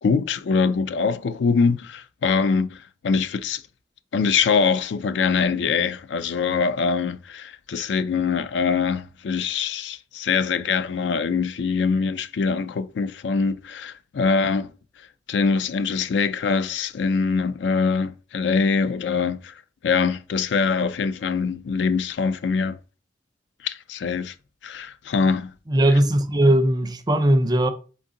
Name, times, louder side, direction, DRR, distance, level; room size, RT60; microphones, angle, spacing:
voice 1, 0.0-3.6 4.1-14.7 15.3-22.8 23.6-24.3 24.6-25.5, left 5 dB, 70° left, 0.4 m, -23 dB
voice 2, 25.7-27.7, right 1 dB, 20° right, 0.4 m, -19 dB
3.8 x 3.7 x 3.7 m
head